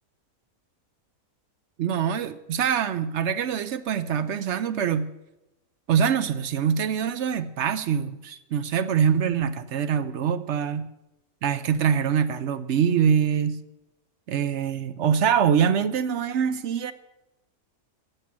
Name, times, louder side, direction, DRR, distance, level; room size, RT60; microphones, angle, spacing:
voice 1, 1.8-5.1 5.9-10.9 11.4-13.6 14.3-16.9, right 8 dB, 65° right, 13 dB, 0.8 m, -24 dB
12.0 x 7.6 x 8.4 m, 0.96 s
omnidirectional pair, 1.5 m